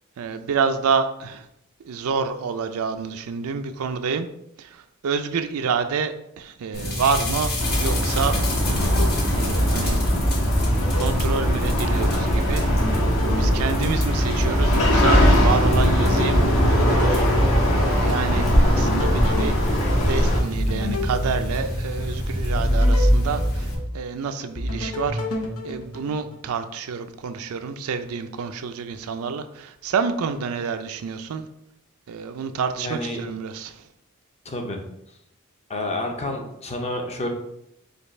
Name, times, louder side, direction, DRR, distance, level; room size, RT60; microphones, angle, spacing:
voice 1, 0.2-1.5 1.9-4.3 4.6-7.5 7.8-8.4 9.3-10.0 11.0-13.0 13.3-25.2 25.6-31.5 32.1-33.8, right 5 dB, 80° right, 9 dB, 0.4 m, -28 dB
sound 1, 6.7-23.7, equal, 50° left, 1.3 m, -26 dB
sound 2, 7.6-20.4, equal, 65° left, 1.6 m, -21 dB
sound 3, 8.5-10.2 10.5-12.2 12.5-16.2 16.6-18.2 18.6-22.1 22.5-24.2 24.5-26.5, left 1 dB, 90° left, 0.8 m, -32 dB
voice 2, 32.8-33.2 34.4-34.8 35.7-37.3, left 1 dB, 30° left, 3 dB, 0.7 m, -29 dB
5.1 x 2.3 x 4.3 m, 0.79 s
head